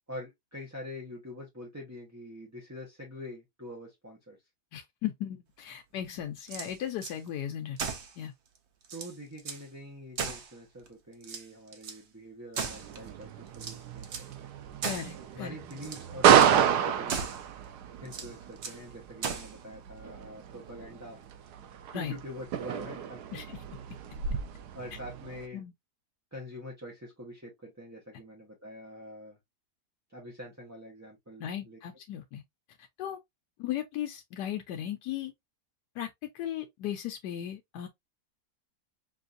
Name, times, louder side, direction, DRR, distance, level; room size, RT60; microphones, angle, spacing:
voice 1, 0.1-4.4 8.9-14.5 15.3-17.3 18.0-21.2 21.9-23.4 24.7-25.6 26.3-29.4 30.1-31.8, equal, 15° right, 0.7 m, -45 dB
voice 2, 4.7-7.8 8.2-8.3 14.8-15.6 21.9-22.1 23.3-23.6 25.5-25.7 31.4-32.4 33.0-33.2 33.6-35.3 36.0-37.9, left 10 dB, 85° left, 1.2 m, -36 dB
sound 1, 6.4-7.2 7.8-8.2 8.6-8.7 8.8-9.7 10.2-10.9 11.2-12.0 12.5-13.1 13.5-14.3 14.8-15.2 15.7-16.1 16.4-16.6 17.1-17.5 18.1-18.8 19.2-19.6, right 5 dB, 55° right, 0.9 m, -37 dB
sound 2, 12.6-25.4, right 9 dB, 80° right, 1.2 m, -30 dB
5.3 x 2.5 x 2.5 m
omnidirectional pair, 1.7 m